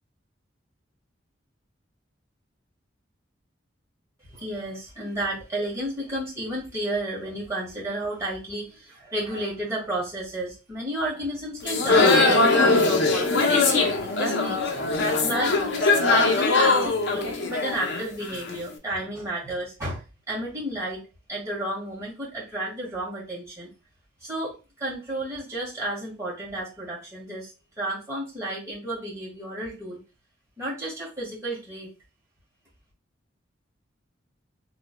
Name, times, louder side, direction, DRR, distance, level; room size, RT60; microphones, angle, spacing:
voice 1, 4.3-15.0 15.2-21.0 21.3-23.7 24.2-27.5 27.8-30.0 30.6-31.9, right 1 dB, 15° right, -5 dB, 1.8 m, -32 dB
sound 1, 11.6-18.6, left 3 dB, 65° left, 0.6 m, -21 dB
3.7 x 3.1 x 2.2 m, 0.29 s
head